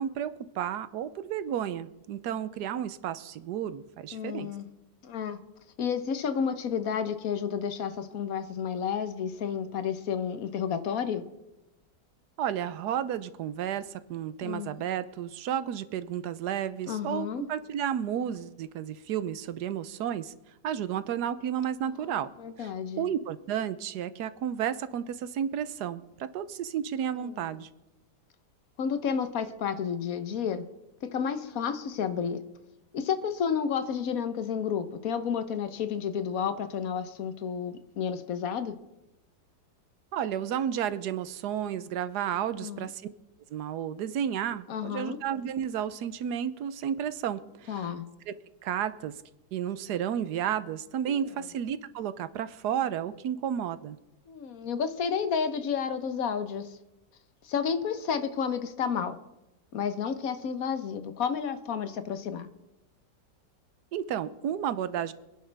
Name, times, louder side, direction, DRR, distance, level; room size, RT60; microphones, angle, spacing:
voice 1, 0.0-4.5 12.4-20.3 20.6-22.3 22.6-22.7 23.0-27.7 40.1-43.0 43.5-47.8 48.3-48.4 48.6-49.1 49.5-54.0 63.9-65.1, right 9 dB, 75° right, 14 dB, 1.3 m, -32 dB
voice 2, 4.1-4.7 5.0-5.4 5.8-11.3 14.4-14.8 16.9-17.5 22.0-23.1 27.1-27.6 28.8-30.7 31.0-32.4 32.9-38.8 42.5-42.9 44.7-45.2 47.7-48.1 51.1-51.4 54.3-56.8 57.4-59.2 59.7-62.5, left 7 dB, 60° left, 11 dB, 1.3 m, -31 dB
25.0 x 10.5 x 3.4 m, 0.98 s
omnidirectional pair, 1.8 m